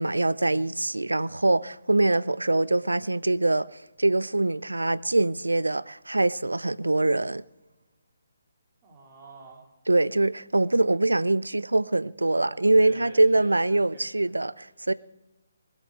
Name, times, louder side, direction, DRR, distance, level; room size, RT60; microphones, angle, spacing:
voice 1, 0.0-7.4 9.9-14.9, right 2 dB, 80° right, 0.6 m, -24 dB
voice 2, 8.8-9.7 12.7-14.3, right 3 dB, 20° right, 3.1 m, -48 dB
20.0 x 8.2 x 7.8 m
figure-of-eight pair, 140°, 0 cm